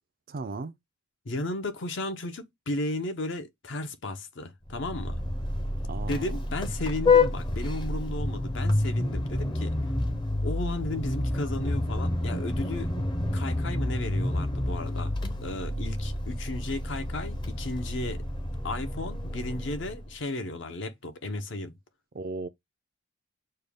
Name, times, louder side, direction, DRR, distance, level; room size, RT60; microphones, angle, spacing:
voice 1, 0.3-0.7 5.9-6.4 22.1-22.5, right 3 dB, 45° right, 0.4 m, -35 dB
voice 2, 1.2-5.2 6.1-9.8 10.4-12.9 13.3-15.1 15.4-18.2 18.6-21.7, left 2 dB, 60° left, 0.7 m, -34 dB
Vehicle horn car horn honking, 4.7-20.1, left 2 dB, 20° left, 0.6 m, -29 dB
6.5 x 2.3 x 3.5 m
head